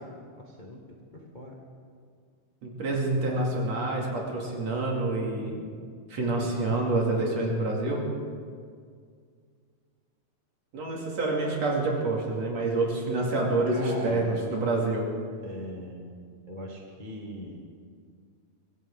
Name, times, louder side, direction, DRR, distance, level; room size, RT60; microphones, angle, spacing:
voice 1, 0.4-0.8 1.1-1.5 13.7-14.4 15.4-16.1 16.5-17.6, equal, 30° left, -2 dB, 0.8 m, -40 dB
voice 2, 2.6-5.5 6.1-8.0 10.7-15.1, right 2 dB, 55° right, -1 dB, 3.4 m, -27 dB
24.0 x 15.5 x 3.7 m, 2.1 s
omnidirectional pair, 3.9 m